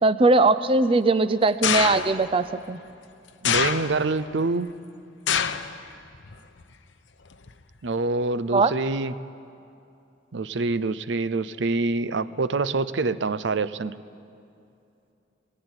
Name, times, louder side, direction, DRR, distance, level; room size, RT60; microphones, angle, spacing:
voice 1, 0.0-2.8 8.5-8.7, right 3 dB, 30° right, 12 dB, 0.4 m, -20 dB
sound 1, 1.6-2.3 3.4-4.2 5.3-5.8 6.1-6.6 7.5-7.6, left 7 dB, 80° left, 0.9 m, -25 dB
voice 2, 3.4-4.7 7.8-9.1 10.3-13.9, right 3 dB, 75° right, 15 dB, 0.6 m, -26 dB
19.5 x 17.5 x 9.7 m, 2.6 s
head